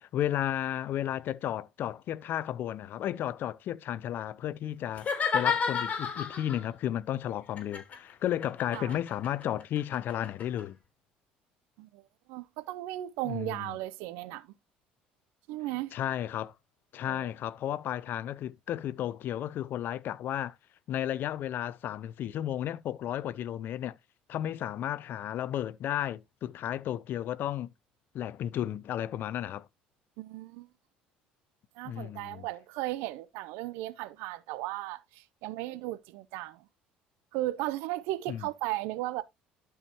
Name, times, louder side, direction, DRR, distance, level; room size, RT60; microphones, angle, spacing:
voice 1, 0.0-10.8 13.2-13.8 15.9-16.5 16.9-20.5 20.9-23.9 24.3-27.7 28.1-29.7 31.8-32.5 38.3-38.4, left 11 dB, 55° left, 0.6 m, -33 dB
sound 1, 4.9-6.7 7.6-10.6, left 6 dB, 35° left, 3.3 m, -31 dB
voice 2, 12.3-14.5 15.5-15.9 17.1-17.3 30.2-30.7 31.8-36.6 37.3-39.2, right 16 dB, 75° right, 0.7 m, -36 dB
12.0 x 4.8 x 2.9 m
hypercardioid pair, 70°, 4 cm